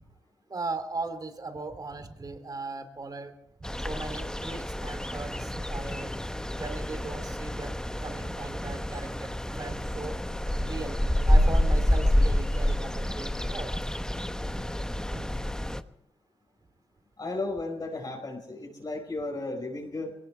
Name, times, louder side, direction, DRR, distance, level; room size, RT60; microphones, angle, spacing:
voice 1, 0.5-3.3 3.6-6.1 6.6-10.1 10.6-11.0 11.3-13.7 15.1-15.2, right 3 dB, 40° right, 9 dB, 2.7 m, -38 dB
sound 1, 3.6-15.8, left 1 dB, 5° left, 1.0 m, -28 dB
voice 2, 17.2-20.1, left 2 dB, 45° left, 0 dB, 4.7 m, -34 dB
22.5 x 18.0 x 3.4 m, 0.80 s
supercardioid pair, 50°, 10 cm